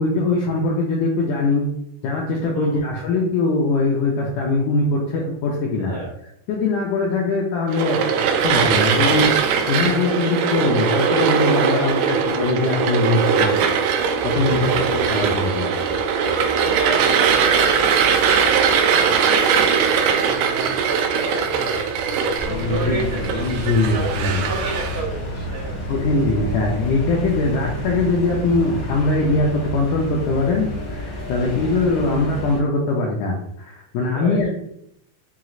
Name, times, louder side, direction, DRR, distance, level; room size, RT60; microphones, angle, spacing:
voice 1, 0.0-1.7 2.0-6.0 6.5-8.0 8.4-13.7 14.0-15.7 22.5-24.4 25.9-34.5, left 3 dB, 80° left, -2 dB, 1.8 m, -22 dB
voice 2, 2.5-2.9 5.8-6.1 11.7-12.2 14.5-14.9 16.6-21.8 22.4-25.8 31.4-31.7 34.1-34.4, right 4 dB, 65° right, -8 dB, 1.8 m, -31 dB
sound 1, 7.7-25.0, right 6 dB, 80° right, 1.9 m, -20 dB
sound 2, 14.0-31.8, equal, 45° right, 0.7 m, -39 dB
sound 3, 22.4-32.6, left 1 dB, 55° left, 1.2 m, -31 dB
6.0 x 2.9 x 2.4 m, 0.75 s
omnidirectional pair, 4.1 m